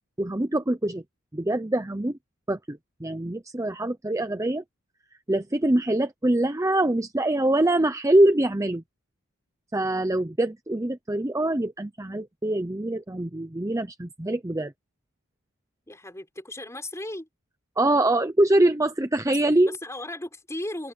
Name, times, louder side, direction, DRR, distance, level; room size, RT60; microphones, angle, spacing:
voice 1, 0.2-1.0 1.3-2.2 2.5-4.6 5.3-8.8 9.7-14.7 17.8-19.8, right 1 dB, 15° right, 0.7 m, -24 dB
voice 2, 15.9-17.3 19.3-19.4 19.6-20.9, left 1 dB, 15° left, 6.1 m, -36 dB
head